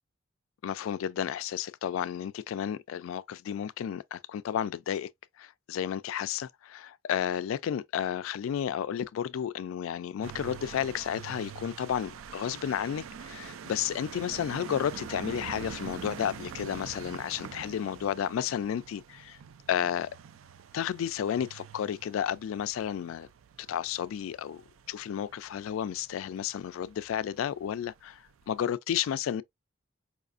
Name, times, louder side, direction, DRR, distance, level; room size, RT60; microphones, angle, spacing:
voice 1, 0.6-5.1 5.4-19.4 19.7-20.1 20.7-23.3 23.7-24.6 24.9-29.4, left 9 dB, 90° left, 0.3 m, -32 dB
sound 1, 10.2-28.6, right 7 dB, 90° right, 0.4 m, -45 dB
4.8 x 2.4 x 2.4 m
head